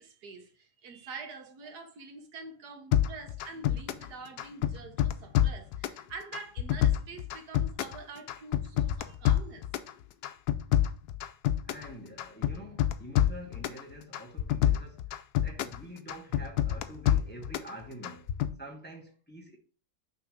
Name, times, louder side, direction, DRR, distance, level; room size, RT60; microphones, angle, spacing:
voice 1, 0.0-9.7, right 4 dB, 90° right, 1.7 m, -46 dB
sound 1, 2.9-4.1 4.4-6.0 6.3-8.0 8.3-9.9 10.2-11.9 12.2-13.8 14.1-15.8 16.1-17.7 18.0-18.5, left 12 dB, 80° left, 1.1 m, -27 dB
voice 2, 4.7-5.5 11.6-15.0 15.4-18.3 18.6-19.6, equal, 10° left, 0.8 m, -47 dB
6.1 x 3.3 x 5.1 m
omnidirectional pair, 1.7 m